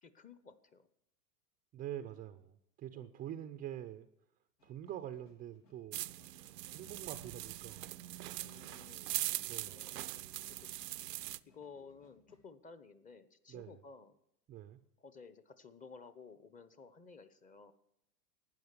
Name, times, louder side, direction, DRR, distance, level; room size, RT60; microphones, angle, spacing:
voice 1, 0.0-0.9 2.9-3.1 8.4-9.2 9.6-10.0 10.5-10.7 11.2-14.2 15.0-17.7, left 5 dB, 15° left, 13 dB, 0.9 m, -55 dB
voice 2, 1.7-4.1 4.6-6.1 6.7-7.8 9.5-9.9 13.5-13.8 14.5-14.8, right 11 dB, 20° right, 10 dB, 0.5 m, -45 dB
sound 1, 4.6-12.4, left 3 dB, 85° left, 3.8 m, -70 dB
sound 2, 5.9-11.4, right 15 dB, 80° right, 0.7 m, -41 dB
12.5 x 9.3 x 9.5 m, 0.79 s
hypercardioid pair, 115°, 48 cm